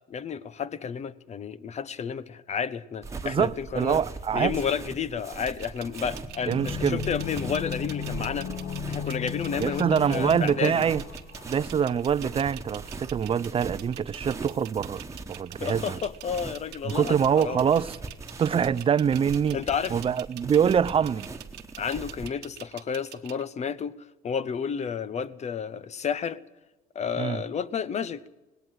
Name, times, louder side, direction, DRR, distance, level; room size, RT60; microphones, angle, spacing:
voice 1, 0.1-4.0 4.3-8.5 8.9-10.8 15.6-17.6 19.5-20.0 21.8-23.9 24.2-26.4 26.9-28.2, left 7 dB, 40° left, 1.0 m, -31 dB
sound 1, 3.0-22.3, right 3 dB, 20° right, 1.5 m, -40 dB
voice 2, 3.2-4.5 6.5-7.0 9.6-11.0 11.4-15.0 15.3-16.0 16.8-18.0 18.4-19.6 19.9-21.3 27.2-27.4, right 7 dB, 35° right, 0.6 m, -24 dB
sound 2, 5.4-23.4, right 14 dB, 85° right, 1.3 m, -45 dB
sound 3, 6.3-12.0 12.3-12.4, left 8 dB, 80° left, 1.5 m, -35 dB
19.5 x 17.5 x 7.7 m
cardioid pair, 110°, 17 cm